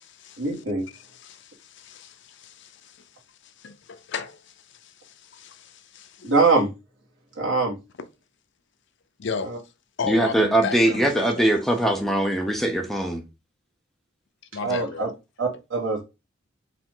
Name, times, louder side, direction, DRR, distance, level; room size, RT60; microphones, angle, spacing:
voice 1, 0.4-0.9 6.2-6.7 7.4-7.8 9.4-9.6 14.6-15.1 15.4-16.0, right 3 dB, 75° right, 1.9 m, -23 dB
voice 2, 1.2-3.1 3.6-4.4 4.8-6.3 9.2-9.6 10.0-11.5 14.5-15.1, left 5 dB, 65° left, 0.6 m, -34 dB
voice 3, 10.1-13.2, right 1 dB, ahead, 0.7 m, -21 dB
4.8 x 2.9 x 3.7 m
head